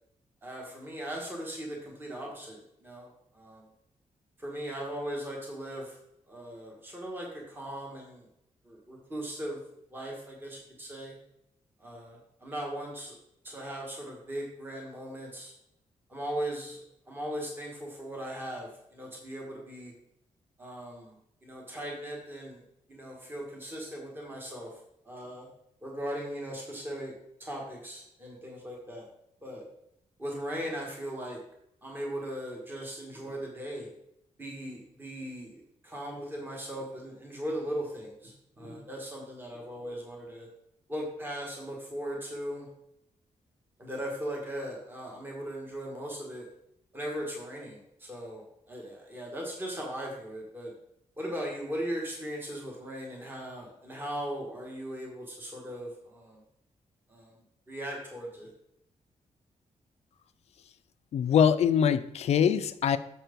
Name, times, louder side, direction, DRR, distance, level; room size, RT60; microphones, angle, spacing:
voice 1, 0.4-3.6 4.4-6.0 6.3-8.3 8.6-9.6 9.9-11.1 11.8-13.1 13.4-15.5 16.1-16.8 17.1-19.9 20.6-21.1 21.4-22.6 22.9-24.7 25.0-25.5 25.8-27.1 27.4-29.1 29.4-29.6 30.2-31.4 31.8-33.9 34.4-40.5 40.9-42.7 43.8-46.4 46.9-50.7 51.2-56.4 57.1-58.5, equal, 15° right, -2 dB, 1.4 m, -38 dB
voice 2, 61.1-63.0, left 8 dB, 55° left, 11 dB, 0.4 m, -23 dB
6.7 x 4.5 x 5.1 m, 0.76 s
wide cardioid pair, 170°, 13 cm